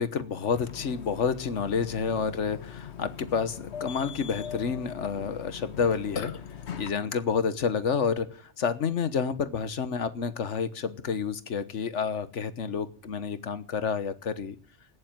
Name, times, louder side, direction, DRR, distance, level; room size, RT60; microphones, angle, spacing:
voice 1, 0.0-6.3 6.8-14.6, left 6 dB, 85° left, 13 dB, 1.5 m, -29 dB
Burping eructation, 0.5-6.9, left 7 dB, 70° left, 1.3 m, -40 dB
15.0 x 10.5 x 9.1 m, 0.41 s
omnidirectional pair, 1.2 m